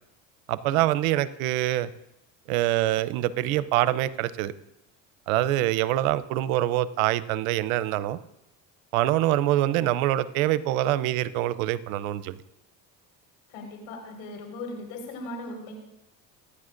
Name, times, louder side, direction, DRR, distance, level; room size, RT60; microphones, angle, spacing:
voice 1, 0.5-1.9 2.5-4.5 5.3-8.2 8.9-12.4, right 14 dB, 85° right, 16 dB, 0.7 m, -25 dB
voice 2, 13.5-15.7, left 2 dB, 80° left, 0 dB, 5.0 m, -38 dB
24.0 x 9.9 x 2.6 m, 0.86 s
hypercardioid pair, 75°, 40 cm